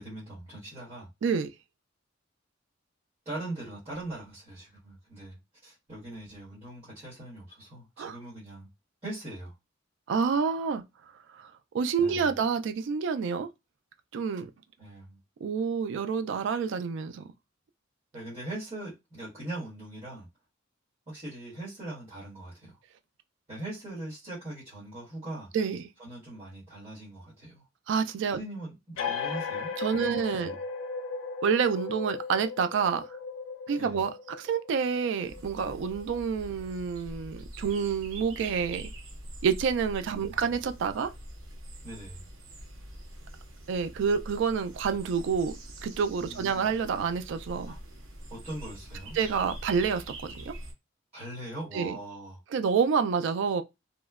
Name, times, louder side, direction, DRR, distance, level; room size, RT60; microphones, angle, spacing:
voice 1, 0.0-1.1 3.2-8.7 9.0-9.5 12.0-12.4 14.8-15.2 18.1-20.3 21.1-22.8 23.5-25.5 26.0-27.7 28.3-30.6 33.8-34.0 40.1-40.5 41.8-42.2 46.2-46.7 47.6-47.8 48.3-49.2 51.1-52.4, right 1 dB, 30° right, 1.3 m, -41 dB
voice 2, 10.1-10.8 11.3-13.5 14.1-14.5 15.4-17.2 25.5-25.8 27.9-28.4 29.8-30.6 31.4-33.0 33.7-38.9 39.4-41.1 43.7-45.6 45.8-47.7 49.1-50.5 51.7-52.0 52.5-53.6, right 6 dB, 65° right, 0.3 m, -28 dB
sound 1, 29.0-36.2, left 5 dB, 75° left, 0.5 m, -37 dB
sound 2, 35.3-50.7, right 1 dB, 85° right, 0.8 m, -44 dB
2.9 x 2.1 x 2.3 m
head